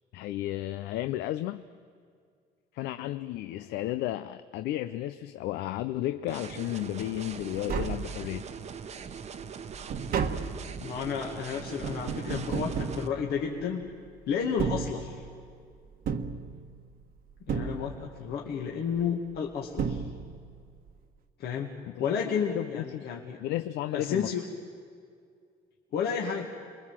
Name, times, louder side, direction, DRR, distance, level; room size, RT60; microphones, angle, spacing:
voice 1, 0.1-1.6 2.7-8.4 21.9-23.1 23.4-24.3, left 14 dB, 85° left, 11 dB, 0.6 m, -33 dB
sound 1, 6.3-13.1, right 6 dB, 40° right, 1.0 m, -42 dB
Tap, 7.3-7.4 7.5-8.6 9.1-13.8 14.4-15.5 16.1-17.0 17.5-18.3 19.3-19.4 19.8-20.6 20.9-21.0, right 6 dB, 60° right, 1.4 m, -34 dB
voice 2, 10.8-13.9 14.3-15.2 17.5-20.0 21.4-23.4 23.9-24.4 25.9-26.5, left 7 dB, 70° left, -1 dB, 2.2 m, -32 dB
28.0 x 21.5 x 7.5 m, 2.2 s
cardioid pair, 110°, 17 cm